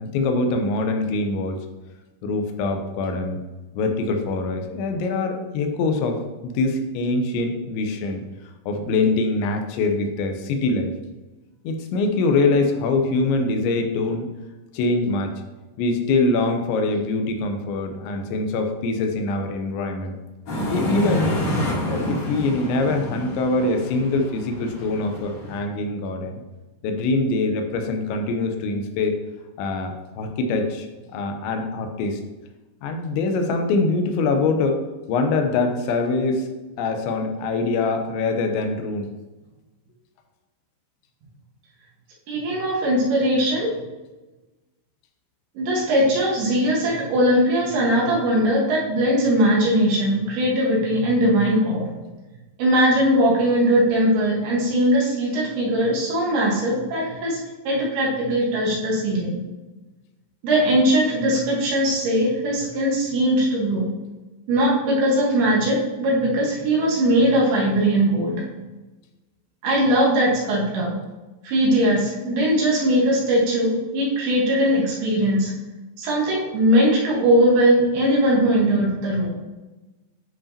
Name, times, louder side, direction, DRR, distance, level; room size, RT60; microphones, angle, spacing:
voice 1, 0.0-1.7 2.2-3.4 3.7-8.2 8.7-10.9 11.6-14.3 14.7-15.3 15.8-20.2 20.7-21.4 21.9-26.4 26.8-29.2 29.6-30.9 31.1-32.2 32.8-34.8 35.1-36.5 36.8-39.1, left 3 dB, 85° left, 5 dB, 3.1 m, -23 dB
sound 1, 20.5-25.6, equal, 45° left, 3.4 m, -28 dB
voice 2, 42.3-43.7 45.5-51.9 52.6-59.4 60.4-63.9 64.5-68.4 69.6-70.9 71.4-75.5 76.0-79.3, equal, 65° right, -4 dB, 3.1 m, -20 dB
9.9 x 5.0 x 2.8 m, 1.1 s
omnidirectional pair, 5.1 m